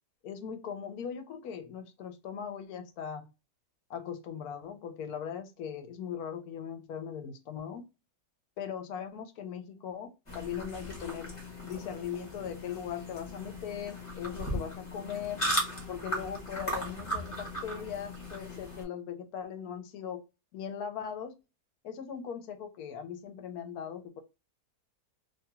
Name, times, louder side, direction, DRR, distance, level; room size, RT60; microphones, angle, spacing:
voice 1, 0.2-3.3 3.9-7.8 8.6-11.3 11.6-15.4 15.9-20.2 20.5-21.4 21.8-24.2, left 8 dB, 75° left, 1.0 m, -39 dB
sound 1, 10.3-18.8, equal, 25° left, 0.9 m, -37 dB
2.9 x 2.8 x 2.3 m
omnidirectional pair, 1.7 m